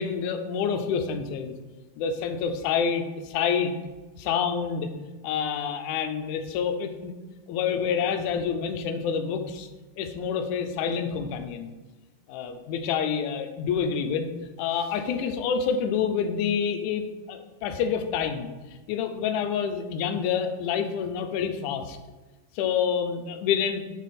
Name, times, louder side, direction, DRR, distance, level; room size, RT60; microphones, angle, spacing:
voice 1, 0.0-1.5 2.0-3.7 4.2-4.9 5.2-7.1 7.5-9.7 10.0-11.7 12.3-14.3 14.6-18.5 18.9-22.0 22.6-23.8, left 7 dB, 85° left, 7 dB, 2.0 m, -27 dB
6.3 x 4.5 x 4.1 m, 1.2 s
omnidirectional pair, 3.5 m